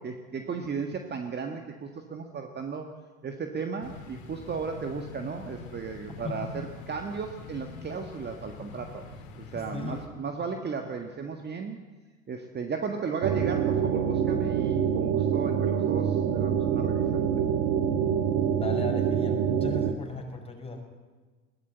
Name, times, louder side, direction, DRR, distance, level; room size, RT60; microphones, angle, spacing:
voice 1, 0.0-2.9 3.2-9.0 9.3-11.8 12.3-17.3, right 5 dB, 25° right, 4 dB, 1.7 m, -35 dB
sound 1, 3.8-10.1, left 4 dB, 65° left, 3.0 m, -44 dB
voice 2, 6.2-6.6 9.5-10.0 10.4-10.5 18.6-20.9, left 3 dB, 15° left, 1 dB, 5.6 m, -37 dB
sound 2, 13.2-19.9, right 8 dB, 45° right, 1.5 m, -26 dB
21.0 x 16.5 x 8.1 m, 1.3 s
figure-of-eight pair, 70°, 42 cm